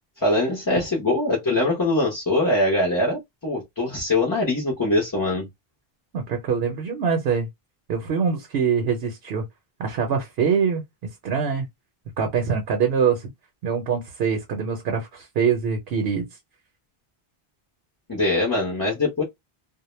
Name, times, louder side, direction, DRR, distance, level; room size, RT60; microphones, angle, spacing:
voice 1, 0.2-5.4 18.1-19.2, left 2 dB, 25° left, 0.6 m, -22 dB
voice 2, 6.1-7.5 7.9-9.4 9.8-11.7 12.2-13.3 13.6-16.3, right 6 dB, 75° right, 0.8 m, -24 dB
2.1 x 2.1 x 3.0 m
omnidirectional pair, 1.0 m